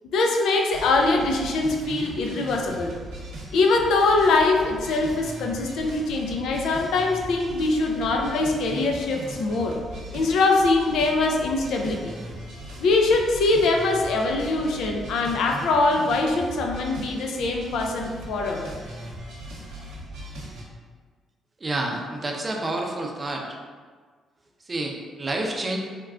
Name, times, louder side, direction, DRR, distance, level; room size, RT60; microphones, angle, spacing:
voice 1, 0.1-2.9 3.5-9.8 10.1-12.1 12.8-18.7, left 3 dB, 80° left, 2 dB, 0.4 m, -23 dB
sound 1, 0.7-20.6, right 1 dB, 85° right, 0.6 m, -39 dB
voice 2, 21.6-23.4 24.7-25.8, right 2 dB, 30° right, 1 dB, 0.4 m, -29 dB
3.5 x 2.2 x 2.4 m, 1.5 s
cardioid pair, 90°, 0 cm